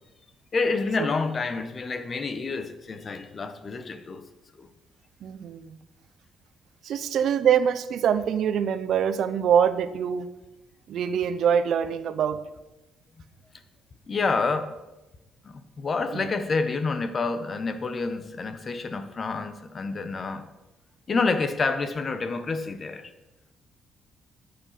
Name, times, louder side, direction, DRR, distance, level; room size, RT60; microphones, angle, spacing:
voice 1, 0.5-4.2 4.6-4.7 14.1-14.8 15.4-20.4 21.1-23.1, left 4 dB, 40° left, 10 dB, 1.4 m, -28 dB
voice 2, 5.2-5.8 6.8-10.3 10.9-12.4 16.1-16.2, right 8 dB, 70° right, 13 dB, 0.9 m, -24 dB
13.0 x 8.8 x 6.0 m, 1.0 s
supercardioid pair, 70°, 0 cm